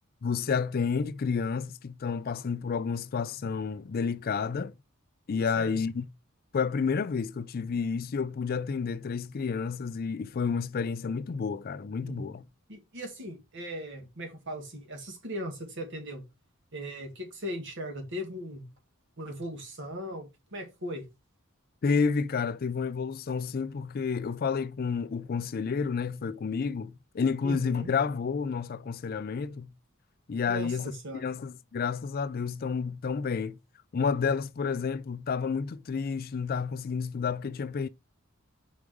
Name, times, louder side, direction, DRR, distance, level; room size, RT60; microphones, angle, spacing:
voice 1, 0.2-4.7 5.3-6.1 6.5-12.4 21.8-29.7 30.3-30.9 31.2-33.6 33.9-37.9, left 5 dB, 45° left, 0.4 m, -30 dB
voice 2, 12.7-16.2 16.7-18.7 19.2-21.1 27.4-27.9 30.5-31.2, equal, 55° right, 2.0 m, -38 dB
5.2 x 4.8 x 4.7 m
head